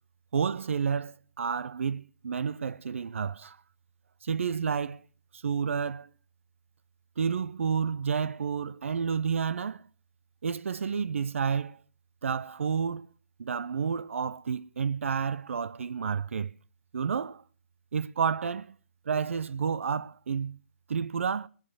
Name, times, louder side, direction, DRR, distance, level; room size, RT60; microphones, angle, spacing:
voice 1, 0.3-3.6 4.2-5.0 5.3-6.1 7.2-9.9 10.4-11.8 12.2-13.1 13.4-16.5 16.9-17.4 17.9-18.8 19.1-20.6 20.9-21.5, right 6 dB, 65° right, 0.5 m, -30 dB
20.5 x 7.3 x 6.1 m
figure-of-eight pair, 145°, 7 cm